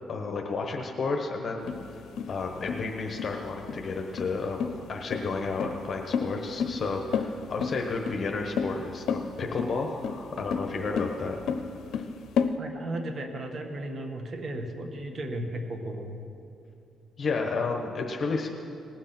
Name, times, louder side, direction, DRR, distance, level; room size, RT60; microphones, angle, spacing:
voice 1, 0.1-2.0 2.3-4.6 4.9-11.4 11.9-12.1 17.2-18.5, left 4 dB, 45° left, 2 dB, 1.1 m, -32 dB
sound 1, 1.7-12.5, left 6 dB, 75° left, 0.7 m, -31 dB
voice 2, 12.6-16.2, right 1 dB, 45° right, 5 dB, 1.4 m, -35 dB
19.0 x 6.4 x 6.0 m, 2.6 s
cardioid pair, 90°, 0 cm